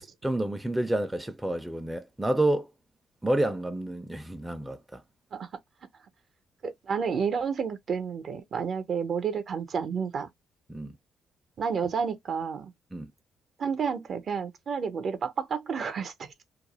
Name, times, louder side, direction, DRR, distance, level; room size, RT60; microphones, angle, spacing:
voice 1, 0.0-2.7 3.2-5.0 10.7-11.0 12.9-13.1, right 1 dB, 10° right, 0.4 m, -29 dB
voice 2, 6.6-10.3 11.6-12.7 13.6-16.4, right 6 dB, 55° right, 0.6 m, -30 dB
2.3 x 2.0 x 2.9 m
cardioid pair, 90°, 0 cm